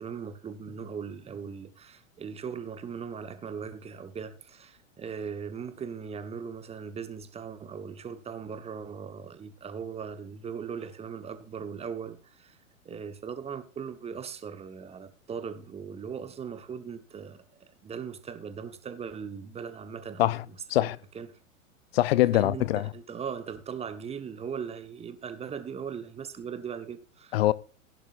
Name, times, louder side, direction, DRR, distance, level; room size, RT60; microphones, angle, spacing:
voice 1, 0.0-12.6 12.8-17.4 17.8-21.4 22.3-27.5, right 6 dB, 15° right, 1.2 m, -39 dB
voice 2, 21.9-22.8 27.3-27.5, left 15 dB, 50° left, 0.7 m, -23 dB
16.0 x 11.5 x 2.6 m
figure-of-eight pair, 105°, 40 cm